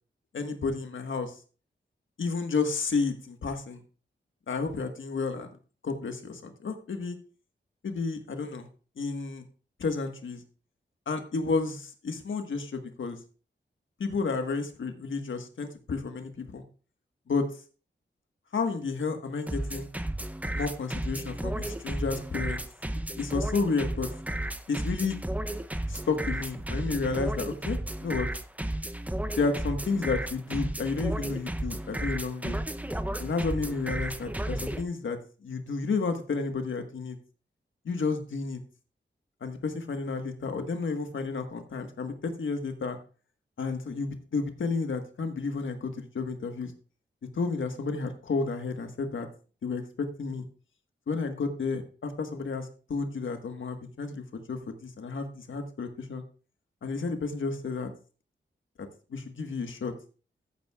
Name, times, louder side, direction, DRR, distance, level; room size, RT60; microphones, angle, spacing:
voice 1, 0.3-1.3 2.2-3.8 4.5-5.5 5.8-7.1 7.8-8.7 9.0-9.4 9.8-10.4 11.1-13.2 14.0-16.6 17.3-17.5 18.5-19.9 20.5-22.6 23.1-24.1 24.7-25.1 25.9-28.3 29.4-32.6 33.2-37.2 37.8-38.6 39.4-43.0 43.6-46.7 47.3-49.3 49.6-50.4 51.1-56.2 56.8-57.9 59.1-59.9, left 4 dB, 85° left, 6 dB, 1.5 m, -31 dB
sound 1, 19.5-34.8, right 1 dB, 10° right, 0.6 m, -33 dB
14.0 x 8.5 x 2.4 m, 0.38 s
wide cardioid pair, 80°, 20 cm